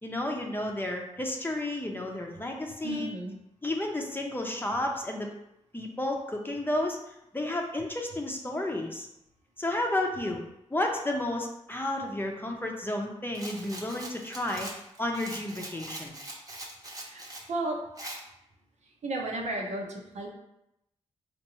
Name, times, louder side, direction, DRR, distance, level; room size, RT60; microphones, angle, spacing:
voice 1, 0.0-3.1 3.6-5.3 5.7-9.1 9.6-10.4 10.7-14.7 15.0-16.1, left 1 dB, 15° left, 1 dB, 0.7 m, -32 dB
voice 2, 2.8-3.4 17.0-17.8 19.0-20.3, right 2 dB, 70° right, 0 dB, 0.8 m, -34 dB
Rattle, 13.3-17.5 18.0-18.2, right 1 dB, 30° right, 0.9 m, -42 dB
4.4 x 2.6 x 3.0 m, 0.85 s
cardioid pair, 60°, 12 cm